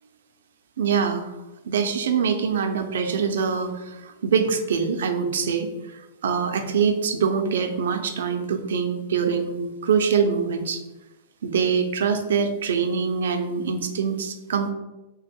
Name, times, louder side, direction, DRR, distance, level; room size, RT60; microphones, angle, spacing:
voice 1, 0.8-1.3 1.7-10.8 11.4-14.7, right 6 dB, 90° right, 6 dB, 0.5 m, -24 dB
3.5 x 2.2 x 4.3 m, 1.0 s
supercardioid pair, 170°, 0 cm